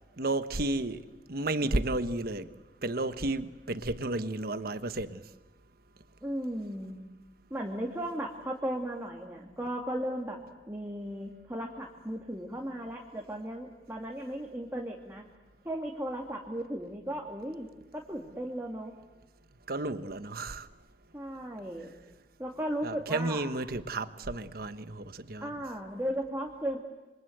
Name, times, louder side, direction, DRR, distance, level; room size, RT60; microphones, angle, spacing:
voice 1, 0.2-1.0 1.3-2.5 2.8-5.2 19.7-20.7 22.8-25.5, right 2 dB, 55° right, 1.3 m, -32 dB
voice 2, 6.2-7.0 7.5-10.4 10.7-15.2 15.6-17.7 17.9-18.9 21.1-21.9 22.4-23.5 25.4-26.8, right 1 dB, 15° right, 2.4 m, -36 dB
27.5 x 24.5 x 8.0 m
head